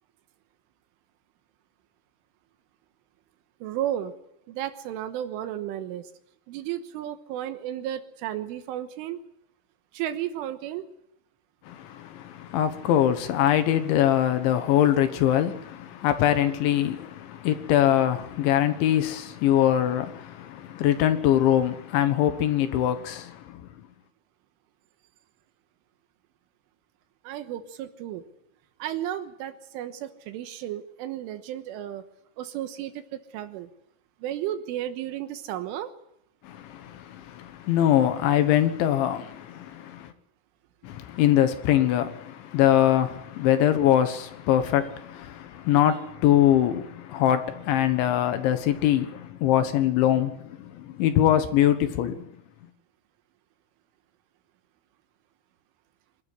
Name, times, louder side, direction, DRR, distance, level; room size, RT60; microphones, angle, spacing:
voice 1, 3.6-4.1 4.5-6.1 6.5-9.2 9.9-10.9 27.3-28.2 28.8-32.0 32.4-33.7 34.2-35.9, right 11 dB, 80° right, 3.5 m, -33 dB
voice 2, 11.7-23.6 36.4-40.1 40.8-52.3, left 11 dB, 70° left, 3.4 m, -23 dB
25.0 x 13.0 x 9.8 m
omnidirectional pair, 6.0 m